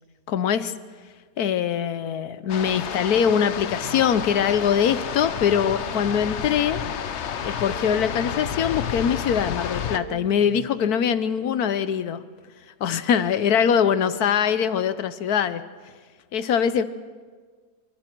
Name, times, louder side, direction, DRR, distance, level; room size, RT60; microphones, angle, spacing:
voice 1, 0.3-0.7 1.4-6.8 7.4-12.2 12.8-15.6 16.3-16.8, left 8 dB, 70° left, 13 dB, 1.3 m, -22 dB
sound 1, 2.5-10.0, left 8 dB, 55° left, 0.9 m, -30 dB
sound 2, 3.7-4.1 4.6-6.3 6.8-8.5 9.0-10.7, right 9 dB, 55° right, 1.6 m, -43 dB
25.0 x 25.0 x 4.5 m, 1.5 s
omnidirectional pair, 1.7 m